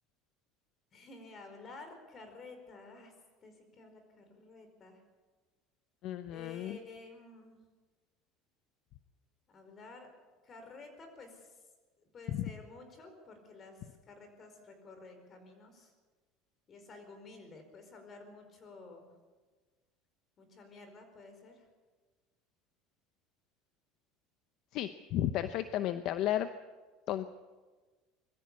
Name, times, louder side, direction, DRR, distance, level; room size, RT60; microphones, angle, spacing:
voice 1, 0.9-3.1 3.4-5.0 6.3-7.6 9.5-10.1 10.4-11.6 12.1-15.9 16.7-19.1 20.4-21.6, left 3 dB, 30° left, 6 dB, 4.8 m, -52 dB
voice 2, 6.0-6.8 12.3-12.4 24.7-26.5 27.1-27.3, left 12 dB, 55° left, 11 dB, 0.8 m, -33 dB
21.5 x 14.5 x 8.5 m, 1.3 s
cardioid pair, 130°, 0 cm